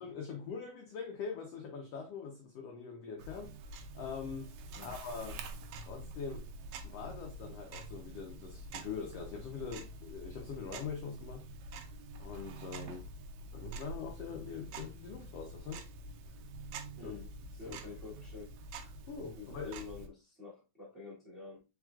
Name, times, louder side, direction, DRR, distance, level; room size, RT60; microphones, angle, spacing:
voice 1, 0.0-4.5 4.8-5.4 5.8-6.5 6.8-13.1 13.5-15.9 17.0-17.1 17.6-17.8 19.1-19.7, left 6 dB, 80° left, 1.4 m, -43 dB
Tick-tock, 3.2-20.1, right 2 dB, 75° right, 1.8 m, -47 dB
voice 2, 16.9-17.3 17.6-18.5 19.4-21.6, left 5 dB, ahead, 1.7 m, -48 dB
4.8 x 4.5 x 2.4 m
omnidirectional pair, 3.8 m